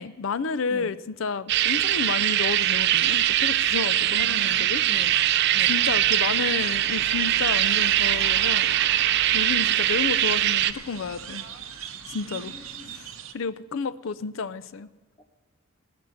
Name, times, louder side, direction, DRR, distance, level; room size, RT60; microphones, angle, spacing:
voice 1, 0.0-4.8 5.6-8.7 9.3-11.5 12.1-12.5 12.9-13.1 13.3-14.9, left 5 dB, 70° left, 15 dB, 0.5 m, -31 dB
sound 1, 1.5-10.7, right 12 dB, 55° right, 0.4 m, -22 dB
sound 2, 1.6-13.3, right 9 dB, 80° right, 0.8 m, -41 dB
sound 3, 2.7-13.3, left 3 dB, 90° left, 1.1 m, -46 dB
voice 2, 4.0-5.1 5.5-5.7 12.2-12.9 14.1-14.2 15.2-15.3, equal, 20° left, 6 dB, 1.1 m, -44 dB
16.5 x 6.1 x 8.6 m, 1.3 s
head